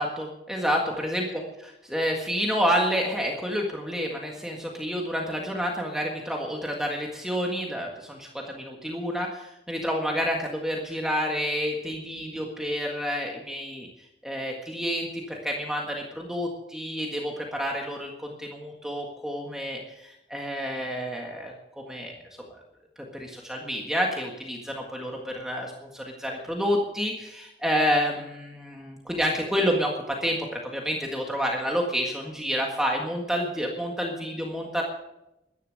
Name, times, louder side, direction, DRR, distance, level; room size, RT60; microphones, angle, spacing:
voice 1, 0.0-1.4 1.8-13.9 14.2-21.5 21.9-22.1 23.1-34.8, equal, 5° right, 0 dB, 1.7 m, -29 dB
13.5 x 11.0 x 6.7 m, 0.88 s
head